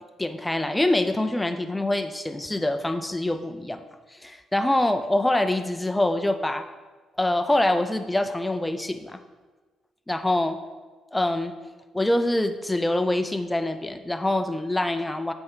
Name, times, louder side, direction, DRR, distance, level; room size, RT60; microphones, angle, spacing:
voice 1, 0.2-3.8 4.1-6.7 7.2-9.2 10.1-10.6 11.1-11.5 11.9-15.3, left 1 dB, 10° left, 8 dB, 0.6 m, -25 dB
7.7 x 4.4 x 5.7 m, 1.3 s
cardioid pair, 90°, 0 cm